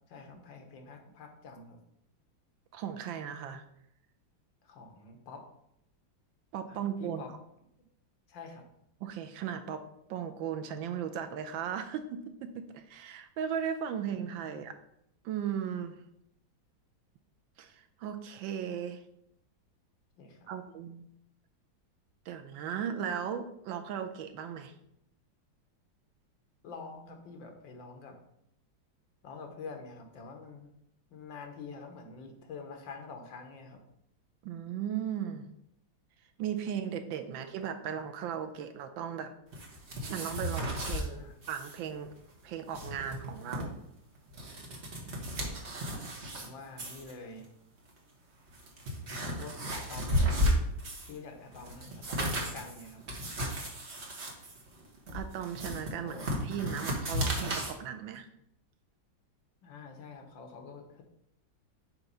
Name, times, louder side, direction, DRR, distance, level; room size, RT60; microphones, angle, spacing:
voice 1, 0.1-1.8 4.6-5.4 6.7-7.3 8.3-8.6 14.2-14.7 20.2-20.6 26.6-28.2 29.2-30.7 31.1-33.8 37.3-37.4 40.9-41.4 46.3-47.5 49.2-50.7 51.1-53.0 56.0-56.3 59.6-61.0, left 4 dB, 75° left, 3 dB, 1.7 m, -47 dB
voice 2, 2.7-3.6 6.5-7.4 9.0-9.8 10.1-14.7 15.2-16.0 17.6-19.0 20.5-21.0 22.3-24.7 34.4-35.5 36.4-39.3 40.0-41.2 41.5-42.1 42.4-43.8 55.1-58.3, right 8 dB, 80° right, 8 dB, 1.4 m, -37 dB
sound 1, 39.5-41.1 41.4-41.8 42.0-42.1 42.5-43.6 44.2-46.5 46.8-47.1 47.9-48.0 48.5-51.2 51.5-57.7, equal, 40° right, 1.3 m, -34 dB
7.9 x 3.0 x 5.4 m, 0.76 s
omnidirectional pair, 2.1 m